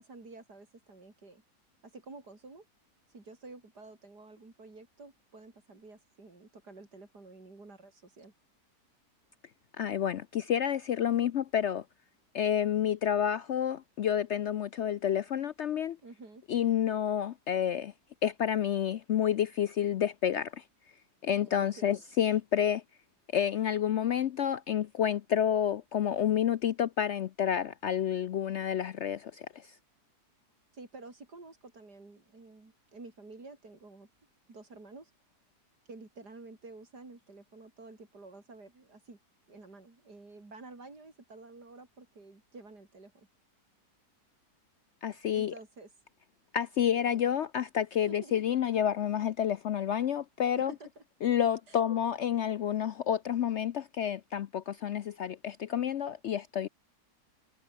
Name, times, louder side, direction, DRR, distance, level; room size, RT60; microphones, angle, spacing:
voice 1, 0.0-1.4 1.8-2.7 3.1-8.3 16.0-16.4 21.3-22.0 30.7-34.1 34.5-35.1 35.9-39.2 39.5-43.3 45.3-45.9 46.9-47.3 48.1-48.3 50.6-51.0 51.7-51.9, right 3 dB, 90° right, 5.3 m, -50 dB
voice 2, 9.8-11.8 12.3-16.0 16.5-17.9 18.2-20.6 21.2-22.8 23.3-29.7 45.0-45.5 46.5-50.7 51.2-56.7, left 9 dB, 65° left, 0.7 m, -29 dB
omnidirectional pair, 1.7 m